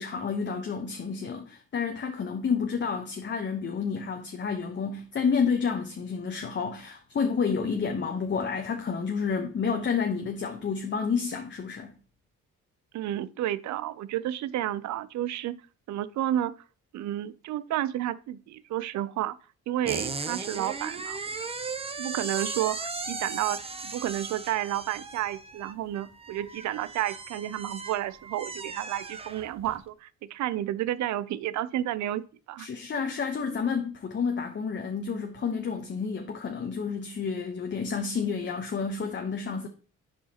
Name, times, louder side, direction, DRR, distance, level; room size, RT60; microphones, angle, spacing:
voice 1, 0.0-11.9 32.6-39.7, left 5 dB, 40° left, 0.9 m, -30 dB
voice 2, 12.9-15.6 15.9-16.5 16.9-19.4 19.7-21.2 22.0-32.7, right 13 dB, 70° right, 0.5 m, -31 dB
sound 1, 19.9-29.8, right 4 dB, 20° right, 0.7 m, -37 dB
10.5 x 4.7 x 2.9 m
cardioid pair, 90°, 30 cm